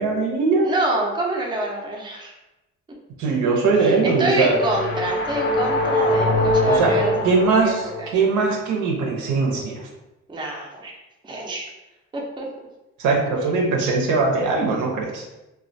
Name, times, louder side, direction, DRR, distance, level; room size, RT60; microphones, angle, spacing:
voice 1, 0.0-0.7 3.2-4.6 6.7-9.9 13.0-15.2, right 4 dB, 80° right, -1 dB, 0.6 m, -21 dB
voice 2, 0.6-2.3 3.8-8.2 10.3-10.9 11.2-11.7 12.1-12.5, right 2 dB, 15° right, -1 dB, 0.4 m, -27 dB
sound 1, 3.9-8.2, left 1 dB, 40° left, 0.5 m, -23 dB
2.2 x 2.1 x 2.5 m, 0.98 s
cardioid pair, 90°, 30 cm